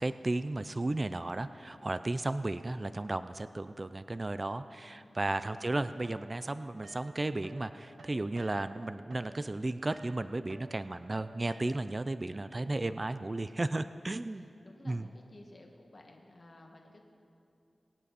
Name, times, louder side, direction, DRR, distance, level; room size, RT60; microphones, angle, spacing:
voice 1, 0.0-14.4 14.9-15.0, right 2 dB, 30° right, 12 dB, 0.4 m, -34 dB
voice 2, 4.8-5.9 13.8-17.0, left 1 dB, 45° left, 1 dB, 1.8 m, -56 dB
sound 1, 6.0-7.7 8.0-12.0, right 3 dB, 70° right, 0.9 m, -54 dB
22.5 x 9.1 x 4.2 m, 2.6 s
wide cardioid pair, 85°, 0 cm